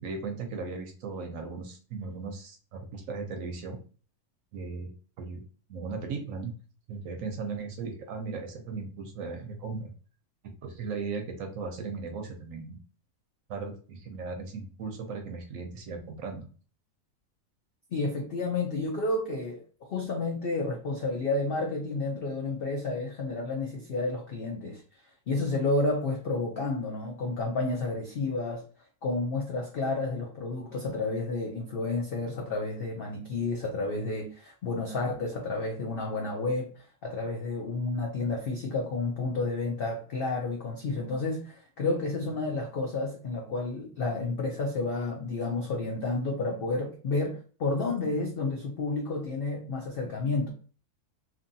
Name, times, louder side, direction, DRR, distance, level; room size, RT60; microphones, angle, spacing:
voice 1, 0.0-3.8 4.5-4.9 5.2-5.4 5.7-6.5 6.9-9.9 10.6-12.8 13.5-16.5, right 4 dB, 70° right, 4 dB, 0.9 m, -37 dB
voice 2, 17.9-19.6 19.9-24.8 25.3-28.6 29.0-36.7 37.0-50.5, left 3 dB, 70° left, 0 dB, 0.5 m, -31 dB
2.8 x 2.6 x 2.6 m, 0.39 s
omnidirectional pair, 1.6 m